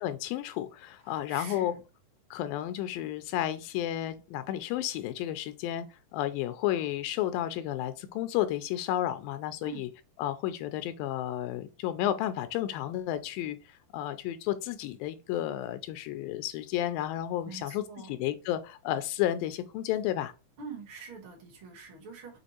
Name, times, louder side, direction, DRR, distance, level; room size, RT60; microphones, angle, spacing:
voice 1, 0.0-1.7 2.3-5.9 6.1-9.9 10.2-13.6 13.9-20.3, left 12 dB, 90° left, 2.3 m, -32 dB
voice 2, 1.1-1.8 9.6-9.8 17.4-18.2 20.6-22.4, right 5 dB, 50° right, 1.9 m, -45 dB
6.3 x 2.5 x 2.9 m
omnidirectional pair, 4.0 m